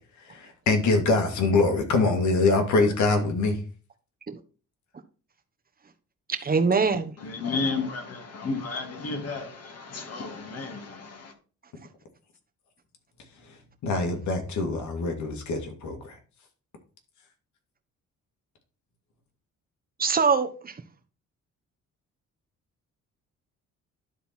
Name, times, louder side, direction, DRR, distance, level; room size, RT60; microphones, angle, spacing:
voice 1, 0.3-3.6 13.8-16.2, left 3 dB, 70° left, 2.2 m, -24 dB
voice 2, 6.3-7.1 20.0-20.7, right 5 dB, 30° right, 1.2 m, -23 dB
voice 3, 7.2-11.3, left 4 dB, 55° left, 2.5 m, -32 dB
12.0 x 4.0 x 4.5 m
cardioid pair, 90°, 30 cm